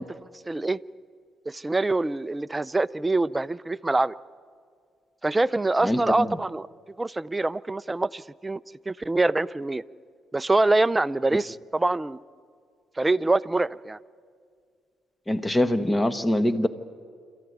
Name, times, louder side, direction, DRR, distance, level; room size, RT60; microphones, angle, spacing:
voice 1, 0.5-0.8 1.5-4.1 5.2-6.7 7.0-9.8 10.3-12.2 13.0-14.0, right 2 dB, 15° right, 15 dB, 0.5 m, -25 dB
voice 2, 15.3-16.7, left 1 dB, 15° left, 12 dB, 1.2 m, -23 dB
27.0 x 14.5 x 9.3 m, 2.1 s
cardioid pair, 90°, 0 cm